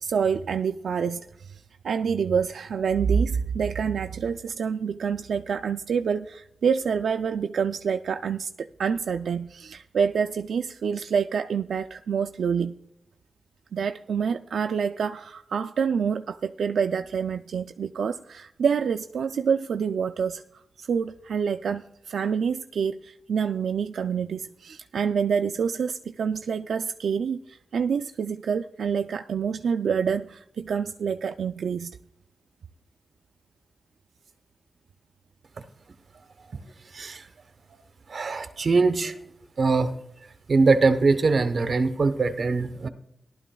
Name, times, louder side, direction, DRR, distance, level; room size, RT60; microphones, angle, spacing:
voice 1, 0.0-12.7 13.7-20.4 20.8-31.9, right 6 dB, 90° right, 7 dB, 0.3 m, -27 dB
voice 2, 36.9-37.2 38.1-39.1 39.6-39.9 40.5-42.9, right 4 dB, 55° right, 9 dB, 0.9 m, -22 dB
18.0 x 12.0 x 2.3 m, 0.80 s
wide cardioid pair, 100°, 0 cm